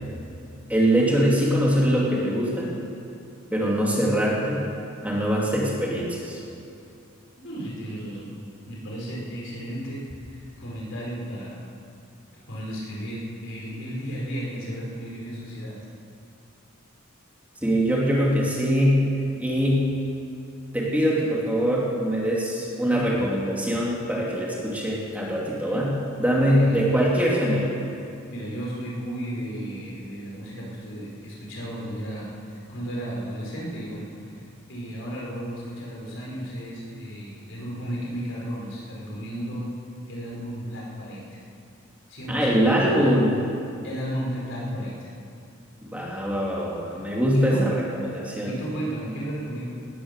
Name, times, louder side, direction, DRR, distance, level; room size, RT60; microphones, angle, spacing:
voice 1, 0.7-2.7 3.5-4.6 5.0-6.4 17.6-19.0 19.4-19.8 20.7-27.7 42.3-43.4 45.9-47.6 48.1-48.5, equal, 5° right, -4 dB, 2.7 m, -23 dB
voice 2, 7.4-8.4 8.7-11.7 12.5-15.8 26.5-26.8 28.3-39.7 40.1-41.4 42.1-43.2 43.8-45.0 47.3-47.8 48.4-49.7, equal, 60° left, -4 dB, 4.5 m, -34 dB
18.5 x 11.5 x 6.6 m, 2.6 s
head